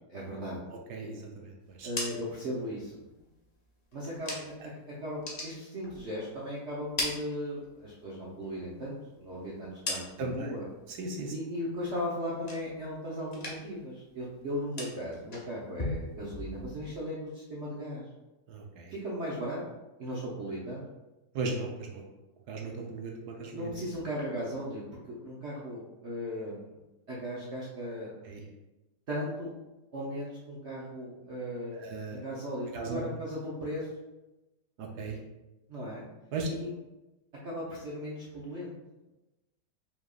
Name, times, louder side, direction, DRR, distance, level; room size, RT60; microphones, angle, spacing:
voice 1, 0.1-0.6 1.8-2.9 3.9-10.7 11.3-18.1 18.9-20.8 23.5-26.8 27.1-28.1 29.1-29.5 29.9-33.9 35.7-36.1 36.4-36.7 37.4-38.7, equal, 55° right, -6 dB, 0.9 m, -37 dB
voice 2, 0.9-1.3 1.8-1.9 10.2-10.5 11.0-11.3 18.5-18.9 21.3-22.0 22.5-23.7 28.3-28.4 31.7-32.2 32.7-33.0 35.0-35.1 36.3-36.5, right 3 dB, 70° right, 1 dB, 1.2 m, -36 dB
sound 1, 1.6-4.7 5.1-6.4 6.7-8.0 8.4-10.5 10.9-11.3 11.7-13.0 13.3-13.9 14.1-17.0, left 2 dB, 40° left, 0.6 m, -40 dB
5.1 x 3.6 x 2.4 m, 1.0 s
omnidirectional pair, 1.9 m